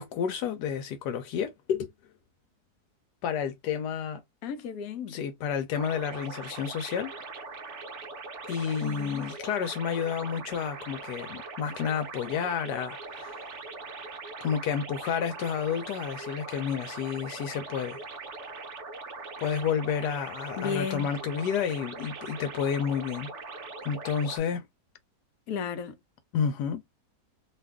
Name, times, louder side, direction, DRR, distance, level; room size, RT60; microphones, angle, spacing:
voice 1, 0.0-1.9 3.2-4.2 5.1-7.1 8.5-13.5 14.4-18.0 19.4-23.3 23.8-24.6 26.3-26.8, left 7 dB, 85° left, 1.2 m, -30 dB
voice 2, 4.4-5.1 8.8-9.3 20.6-21.1 25.5-25.9, left 7 dB, 70° left, 1.0 m, -33 dB
sound 1, 5.7-24.4, right 3 dB, 60° right, 0.8 m, -41 dB
2.8 x 2.4 x 3.4 m
omnidirectional pair, 1.7 m